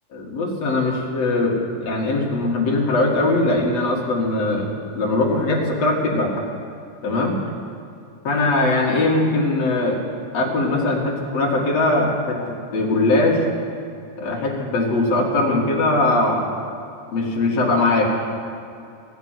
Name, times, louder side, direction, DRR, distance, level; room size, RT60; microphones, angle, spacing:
voice 1, 0.1-4.7 4.9-6.4 7.0-7.4 8.2-10.0 10.3-13.4 14.2-16.5 17.1-18.0, left 2 dB, 60° left, -2 dB, 3.1 m, -20 dB
15.5 x 8.1 x 9.2 m, 2.5 s
omnidirectional pair, 3.5 m